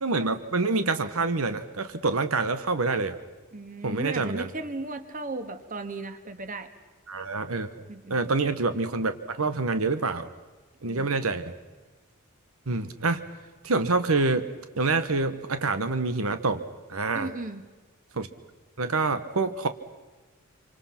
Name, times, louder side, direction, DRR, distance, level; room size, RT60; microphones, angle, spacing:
voice 1, 0.0-3.2 3.8-4.5 7.1-7.7 8.1-10.3 10.8-11.5 12.7-13.2 13.6-14.4 14.8-16.6 16.9-17.3 18.1-18.3 18.8-19.7, right 3 dB, 90° right, 10 dB, 1.2 m, -26 dB
voice 2, 3.5-6.7 7.9-8.2 10.9-11.2 17.1-17.6, right 2 dB, 40° right, 9 dB, 1.7 m, -36 dB
27.0 x 25.5 x 5.9 m, 1.3 s
head